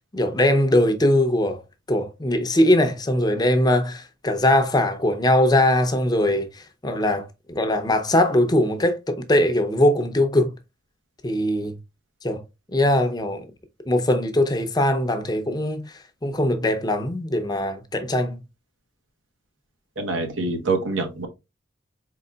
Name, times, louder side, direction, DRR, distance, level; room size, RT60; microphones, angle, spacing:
voice 1, 0.1-1.6 1.9-6.5 6.8-10.5 11.2-11.7 12.2-12.4 12.7-13.5 13.9-15.9 16.2-18.4, left 1 dB, 20° left, 0.6 m, -21 dB
voice 2, 20.0-21.3, right 3 dB, 90° right, 1.1 m, -25 dB
4.6 x 3.8 x 2.2 m
head